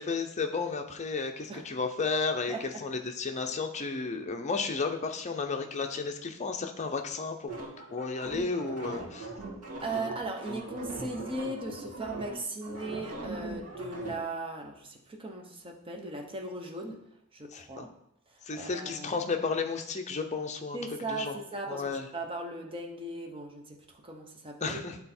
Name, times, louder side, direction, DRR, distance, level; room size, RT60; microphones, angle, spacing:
voice 1, 0.0-7.5 7.9-9.3 17.5-17.9 18.5-20.8 21.1-21.3 21.7-22.1 24.6-25.0, left 4 dB, 30° left, 5 dB, 0.6 m, -33 dB
voice 2, 2.5-2.8 9.8-17.0 17.3-17.9 18.3-19.1 20.7-21.8 22.1-24.8, right 2 dB, 25° right, 1 dB, 0.9 m, -38 dB
sound 1, 7.5-14.2, right 3 dB, 80° right, 2.3 m, -40 dB
9.1 x 4.0 x 4.3 m, 0.79 s
head